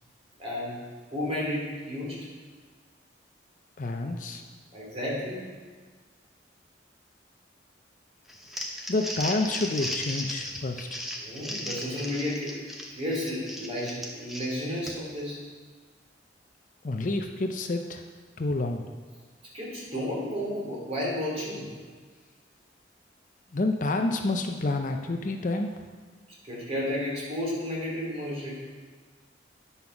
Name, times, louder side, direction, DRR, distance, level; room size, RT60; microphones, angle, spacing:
voice 1, 0.4-0.8 1.1-2.3 4.7-5.4 11.2-12.6 12.9-15.4 19.5-21.7 26.5-28.6, left 1 dB, 35° right, -5 dB, 2.9 m, -32 dB
voice 2, 3.8-4.4 8.9-11.0 16.8-18.0 18.4-18.8 23.5-25.7, left 2 dB, 45° left, 5 dB, 0.5 m, -28 dB
Crumpling crinkling, 8.3-15.2, equal, ahead, 0.9 m, -36 dB
9.6 x 5.6 x 5.9 m, 1.5 s
head